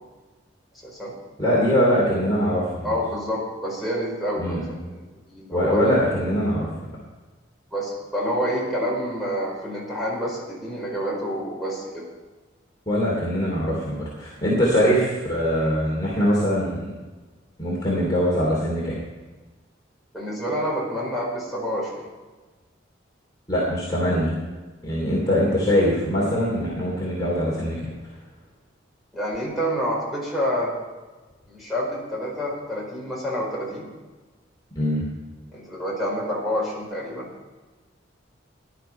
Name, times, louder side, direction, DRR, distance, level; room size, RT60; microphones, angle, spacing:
voice 1, 0.8-1.1 2.8-4.8 5.3-5.8 7.7-12.0 20.1-22.1 29.1-30.7 31.5-33.9 35.5-37.3, equal, ahead, -5 dB, 4.6 m, -28 dB
voice 2, 1.4-2.9 4.4-4.7 5.5-6.7 12.9-16.9 17.6-19.0 23.5-24.3 24.8-27.9 34.7-35.0, equal, 20° left, -6 dB, 3.0 m, -22 dB
17.0 x 11.5 x 4.5 m, 1.3 s
head